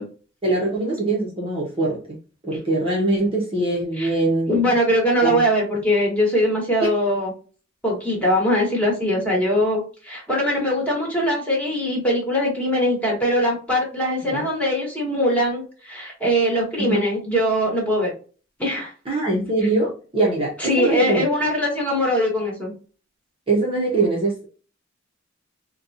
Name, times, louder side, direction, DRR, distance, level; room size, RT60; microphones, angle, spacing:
voice 1, 0.4-2.2 2.4-4.7 5.2-5.4 6.8-6.9 14.3-14.4 16.8-17.0 19.1-21.2 23.5-24.5, right 2 dB, 25° right, -4 dB, 0.9 m, -22 dB
voice 2, 4.5-7.3 7.8-18.1 18.6-18.9 20.6-22.7, equal, 5° left, -3 dB, 1.4 m, -21 dB
4.0 x 2.3 x 2.7 m, 0.38 s
head